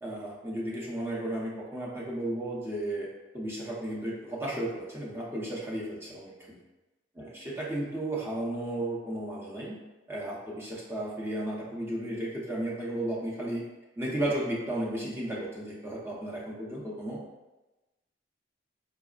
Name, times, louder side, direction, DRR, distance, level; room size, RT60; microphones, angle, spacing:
voice 1, 0.0-3.1 3.3-6.6 7.2-9.8 10.1-13.6 14.0-17.2, right 1 dB, 15° right, -5 dB, 0.6 m, -34 dB
4.8 x 2.0 x 2.3 m, 1.1 s
head